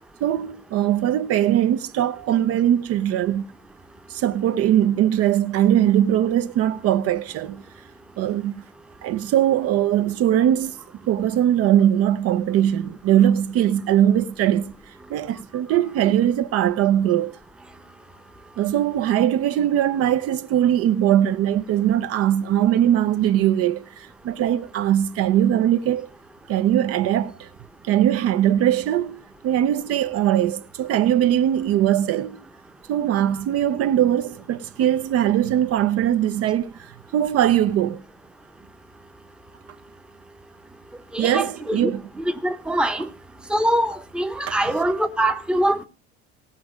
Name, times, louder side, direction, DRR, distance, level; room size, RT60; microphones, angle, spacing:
voice 1, 0.2-3.4 4.1-7.6 8.2-8.6 9.0-10.7 11.1-14.7 15.1-17.4 18.6-26.1 26.5-27.5 27.9-32.4 32.9-38.0 41.2-42.0 43.0-43.1 44.5-44.8, right 11 dB, 55° right, 0.7 m, -21 dB
voice 2, 41.1-41.9 42.2-43.1 43.5-45.9, right 1 dB, 5° right, 0.8 m, -23 dB
18.0 x 6.1 x 5.0 m
cardioid pair, 135°, 29 cm